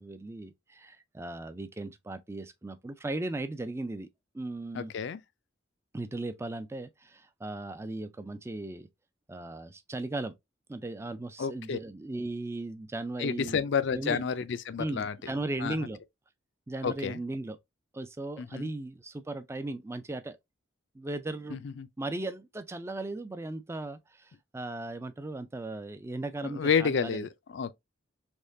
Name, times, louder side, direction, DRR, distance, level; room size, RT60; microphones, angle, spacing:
voice 1, 0.0-4.1 4.3-4.9 5.9-8.9 9.3-10.3 10.7-13.6 13.9-14.2 14.8-16.0 16.7-17.6 17.9-20.4 20.9-21.6 22.0-27.3, right 2 dB, 15° right, 0.3 m, -37 dB
voice 2, 4.7-5.2 11.4-11.8 13.2-15.2 15.6-15.8 16.8-17.2 18.4-18.7 21.5-21.9 26.4-27.7, left 6 dB, 65° left, 0.4 m, -30 dB
3.5 x 3.1 x 2.6 m
head